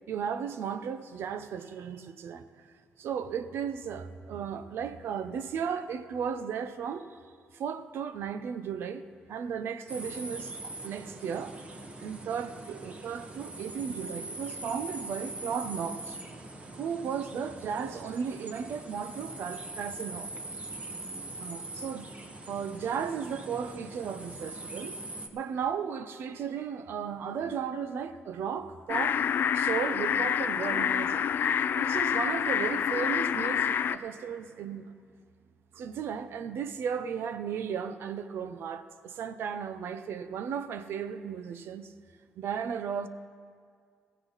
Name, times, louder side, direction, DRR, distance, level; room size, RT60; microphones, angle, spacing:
voice 1, 0.1-2.5 3.0-7.1 7.5-9.0 9.3-11.6 12.0-16.2 16.8-20.3 21.4-22.1 22.5-25.0 25.3-29.2 29.5-34.9 35.7-41.9 42.4-43.1, right 7 dB, 70° right, 11 dB, 0.8 m, -35 dB
sound 1, 9.9-25.3, right 2 dB, 30° right, 1.4 m, -42 dB
sound 2, 28.9-34.0, left 8 dB, 60° left, 0.5 m, -27 dB
16.0 x 16.0 x 4.1 m, 2.1 s
cardioid pair, 80°, 4 cm